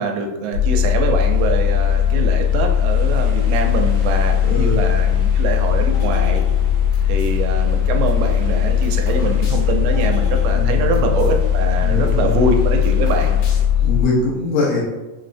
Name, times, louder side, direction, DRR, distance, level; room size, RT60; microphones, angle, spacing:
voice 1, 0.0-6.4 7.1-13.4, right 4 dB, 90° right, 3 dB, 2.3 m, -23 dB
sound 1, 0.5-14.1, left 9 dB, 55° left, 1.6 m, -18 dB
sound 2, 0.8-13.6, right 1 dB, 70° right, 1.3 m, -39 dB
voice 2, 4.4-4.8 10.5-11.2 11.8-12.4 13.8-14.8, left 2 dB, 75° left, -4 dB, 2.0 m, -23 dB
sound 3, 5.9-7.4 7.9-11.4 11.6-11.7 11.9-13.9, left 1 dB, 90° left, 2.5 m, -37 dB
5.6 x 2.0 x 2.5 m, 1.1 s
omnidirectional pair, 4.0 m